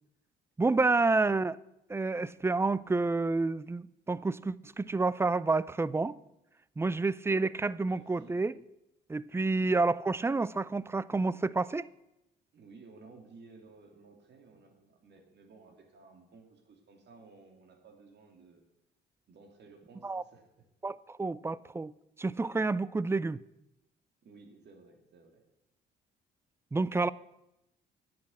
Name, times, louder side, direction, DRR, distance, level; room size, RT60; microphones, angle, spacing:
voice 1, 0.6-1.6 1.9-6.2 6.8-8.5 9.1-11.9 20.0-20.2 20.8-21.9 22.2-23.4 26.7-27.1, right 3 dB, 15° right, 0.3 m, -29 dB
voice 2, 7.8-8.3 12.5-18.6 19.3-20.4 24.2-25.4, right 4 dB, 60° right, 2.6 m, -56 dB
10.0 x 7.6 x 7.1 m
cardioid pair, 90°, 20 cm